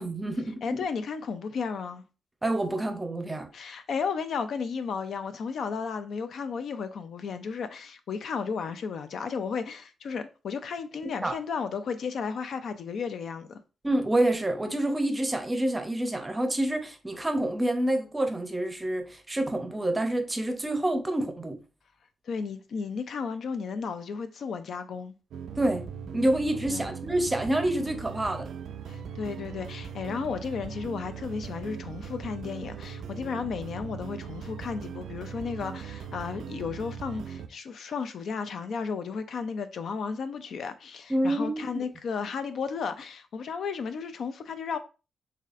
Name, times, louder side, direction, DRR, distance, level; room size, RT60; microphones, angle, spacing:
voice 1, 0.0-0.8 2.4-3.5 11.2-11.4 13.8-21.6 25.6-25.8 26.1-28.5 41.1-41.8, right 1 dB, 15° right, 0.6 m, -27 dB
voice 2, 0.6-2.0 3.5-13.6 22.3-25.1 26.7-26.9 28.9-44.8, left 5 dB, 65° left, 0.4 m, -34 dB
sound 1, 25.3-37.5, right 7 dB, 90° right, 0.3 m, -39 dB
4.0 x 3.2 x 2.4 m
wide cardioid pair, 130°, 0 cm